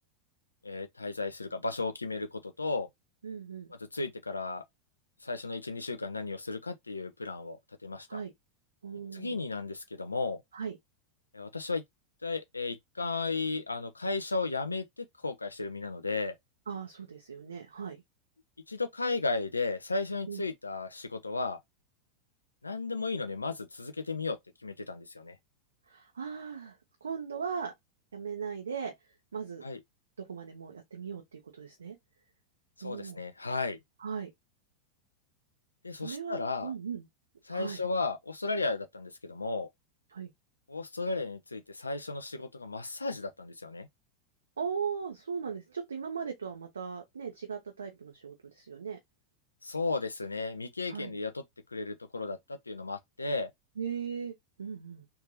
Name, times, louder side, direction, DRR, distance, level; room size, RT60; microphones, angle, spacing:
voice 1, 0.6-2.9 3.9-4.6 5.2-7.6 7.8-8.2 9.1-10.4 11.3-11.8 12.2-16.3 18.7-21.6 22.6-25.4 29.6-29.8 32.8-33.8 35.8-36.7 37.5-39.7 40.7-43.9 49.6-51.4 51.7-52.4 52.7-53.5, left 3 dB, 80° left, 0.7 m, -34 dB
voice 2, 3.2-3.7 8.1-8.3 8.8-9.4 10.5-10.8 16.7-18.0 20.3-20.4 25.9-27.7 28.1-29.7 30.2-32.0 32.8-33.2 34.0-34.3 35.9-37.1 37.5-37.8 40.1-40.3 44.6-49.0 50.9-51.1 53.8-54.3 54.6-55.1, right 6 dB, 70° right, 0.9 m, -38 dB
3.4 x 3.2 x 2.7 m
figure-of-eight pair, 90°, 0 cm